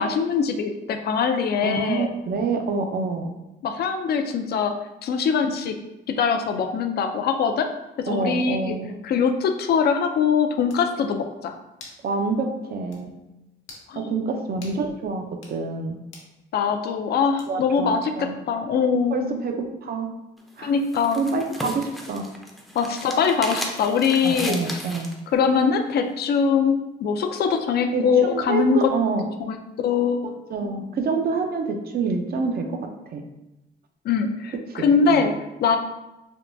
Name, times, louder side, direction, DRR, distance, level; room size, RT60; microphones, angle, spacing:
voice 1, 0.0-2.1 3.6-4.7 5.0-5.8 6.1-7.7 8.0-8.7 9.0-11.6 13.9-14.1 16.5-19.3 20.6-21.2 22.7-24.8 25.3-28.9 29.4-30.2 34.0-35.3 35.6-35.8, left 6 dB, 55° left, 6 dB, 0.4 m, -22 dB
voice 2, 1.6-3.3 8.1-9.0 12.0-13.1 14.0-16.0 17.5-18.3 19.1-20.1 20.6-20.7 21.2-22.3 24.2-25.1 27.9-29.3 30.5-32.8 33.1-33.2 34.7-35.3, right 4 dB, 50° right, 4 dB, 0.5 m, -27 dB
sound 1, 10.7-10.9 11.8-12.0 12.4-12.5 12.9-13.0 13.6-13.9 14.6-14.8 15.3-15.6 16.1-16.3 17.4-17.7, left 3 dB, 75° left, 0.8 m, -45 dB
sound 2, 20.4-25.2, equal, ahead, 0.5 m, -35 dB
3.5 x 2.2 x 2.6 m, 0.97 s
cardioid pair, 90°, 20 cm